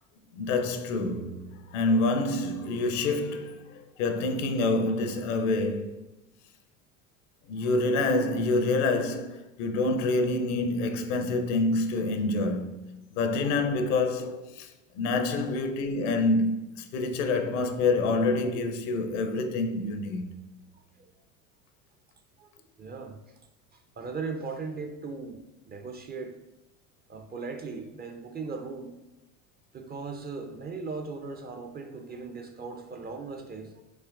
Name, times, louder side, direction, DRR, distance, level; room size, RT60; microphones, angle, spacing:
voice 1, 0.4-6.0 7.5-20.3, left 2 dB, 65° left, 0.7 m, -27 dB
voice 2, 22.8-23.2 23.7-26.3 27.1-28.9 29.7-33.8, right 4 dB, 25° right, 0.5 m, -38 dB
5.5 x 3.1 x 2.5 m
hypercardioid pair, 75°, 39 cm